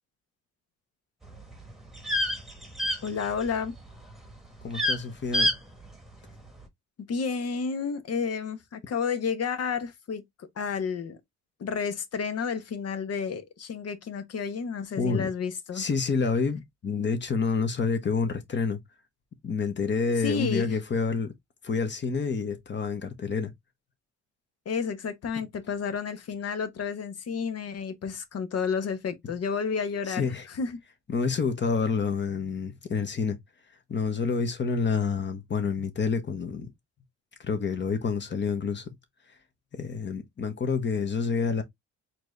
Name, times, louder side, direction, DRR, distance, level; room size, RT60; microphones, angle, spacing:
sound 1, 1.2-3.7 3.9-4.3 4.6-5.0 5.3-5.6 5.8-5.9, left 1 dB, ahead, 1.3 m, -27 dB
voice 1, 3.0-3.7 7.1-11.2 11.6-15.9 20.2-20.8 24.6-30.8, left 6 dB, 55° left, 1.0 m, -31 dB
voice 2, 4.6-5.5 15.0-15.3 15.7-18.8 19.4-21.3 21.6-23.5 30.1-30.5 31.1-33.4 33.9-36.7 37.4-38.9 39.7-41.6, left 5 dB, 35° left, 1.2 m, -28 dB
4.4 x 2.7 x 3.2 m
cardioid pair, 90°, 30 cm